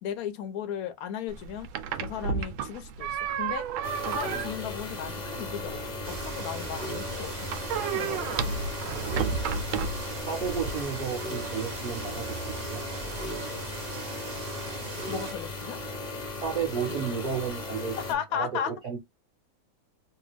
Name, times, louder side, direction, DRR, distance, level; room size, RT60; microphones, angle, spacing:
voice 1, 0.0-1.7 2.0-3.7 4.0-5.8 6.1-8.3 15.1-15.8 17.9-18.7, left 9 dB, 65° left, 0.9 m, -35 dB
sound 1, 1.3-10.8, right 6 dB, 90° right, 1.4 m, -33 dB
sound 2, 3.8-18.1, left 2 dB, 45° left, 0.6 m, -36 dB
sound 3, 6.0-15.3, right 6 dB, 65° right, 1.3 m, -41 dB
voice 2, 10.3-12.2 12.6-13.1 16.3-18.0 18.3-19.0, right 6 dB, 35° right, 1.4 m, -32 dB
3.4 x 2.3 x 3.3 m
omnidirectional pair, 2.1 m